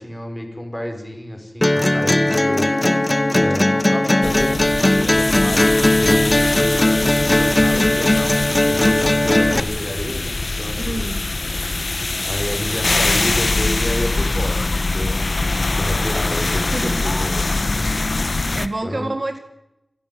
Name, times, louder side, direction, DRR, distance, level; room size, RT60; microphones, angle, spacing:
voice 1, 0.0-2.7 3.3-11.0 12.1-15.3 15.7-19.1, equal, 5° left, 5.8 m, -30 dB
sound 1, 1.6-9.6, left 1 dB, 30° left, 1.2 m, -17 dB
sound 2, 4.2-18.7, left 2 dB, 65° left, 1.1 m, -23 dB
voice 2, 10.8-11.2 16.7-17.2 18.3-19.4, right 2 dB, 50° right, 1.8 m, -28 dB
28.0 x 11.0 x 9.5 m
wide cardioid pair, 60°, 0 cm